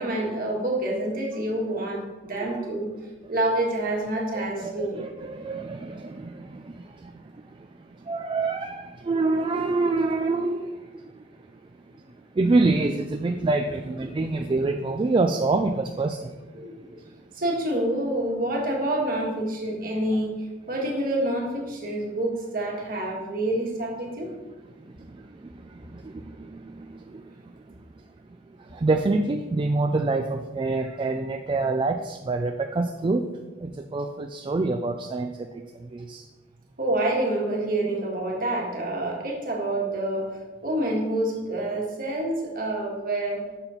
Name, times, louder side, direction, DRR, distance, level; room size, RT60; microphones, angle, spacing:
voice 1, 0.0-2.9 3.3-5.1 16.5-17.0 17.3-20.3 20.7-24.3 30.8-30.9 36.8-43.5, right 1 dB, 50° right, -1 dB, 1.6 m, -27 dB
voice 2, 4.3-7.3 7.6-11.2 12.4-16.4 24.8-27.3 28.7-33.2 33.6-36.2, right 3 dB, 25° right, 5 dB, 0.3 m, -27 dB
6.9 x 4.0 x 5.7 m, 1.2 s
head